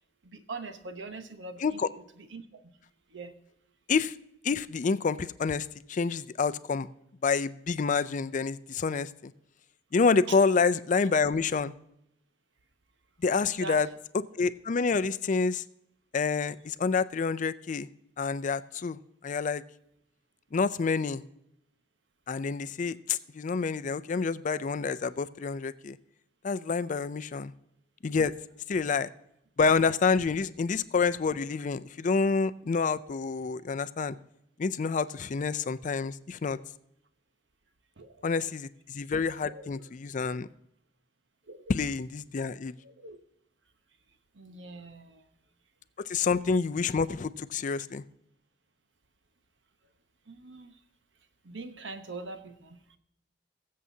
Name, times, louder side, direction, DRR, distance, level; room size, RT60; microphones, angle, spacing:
voice 1, 0.2-2.7 3.1-3.3 10.3-10.4 13.3-13.8 38.0-38.2 39.5-39.9 41.5-41.7 42.8-43.2 44.3-45.3 50.3-50.8 51.4-53.0, right 3 dB, 80° right, 8 dB, 1.0 m, -43 dB
voice 2, 4.4-6.9 7.2-9.3 9.9-11.7 13.2-13.9 14.1-15.6 16.1-17.9 18.2-19.0 19.2-19.6 20.5-21.2 22.3-26.0 26.4-27.5 28.0-28.3 28.7-29.1 29.6-34.2 34.6-36.6 38.2-40.5 41.7-42.7 46.0-48.0, left 5 dB, 45° left, 14 dB, 0.4 m, -28 dB
22.0 x 7.5 x 2.8 m, 0.76 s
head